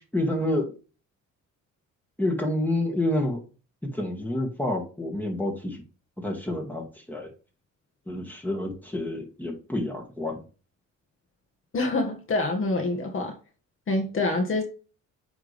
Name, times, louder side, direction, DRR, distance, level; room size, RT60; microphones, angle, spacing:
voice 1, 0.1-0.7 2.2-3.4 3.8-5.8 6.2-7.3 8.1-10.4, left 1 dB, 5° left, 2.1 m, -28 dB
voice 2, 11.7-13.4 13.9-14.6, left 2 dB, 45° left, 1.4 m, -26 dB
8.8 x 3.5 x 3.4 m
cardioid pair, 90°, 30 cm